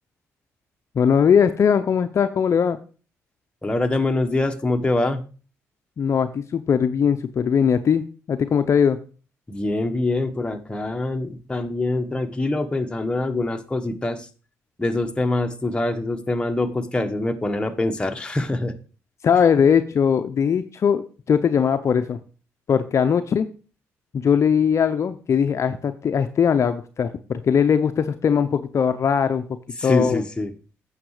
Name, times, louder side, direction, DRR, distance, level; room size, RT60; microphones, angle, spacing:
voice 1, 0.9-2.8 6.0-9.0 19.2-22.2 22.7-23.5 24.1-29.4 29.8-30.2, left 7 dB, 50° left, 9 dB, 0.7 m, -20 dB
voice 2, 3.6-5.2 9.5-14.3 14.8-18.7 29.8-30.5, left 2 dB, 15° left, 5 dB, 1.4 m, -24 dB
9.1 x 6.7 x 4.9 m, 0.37 s
supercardioid pair, 65°, 6 cm